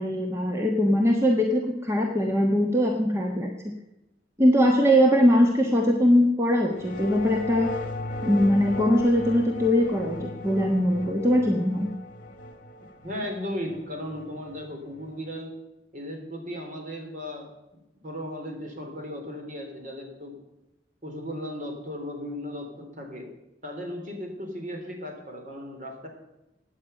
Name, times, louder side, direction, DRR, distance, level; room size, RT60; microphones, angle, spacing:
voice 1, 0.0-3.5 4.4-7.7 8.2-11.9, equal, 15° right, 1 dB, 1.3 m, -21 dB
sound 1, 6.7-15.4, left 2 dB, 50° left, 1.7 m, -37 dB
voice 2, 12.8-15.5 15.9-20.4 21.0-23.3 23.6-26.1, left 1 dB, 45° right, 3 dB, 3.3 m, -36 dB
16.0 x 9.6 x 5.6 m, 0.91 s
head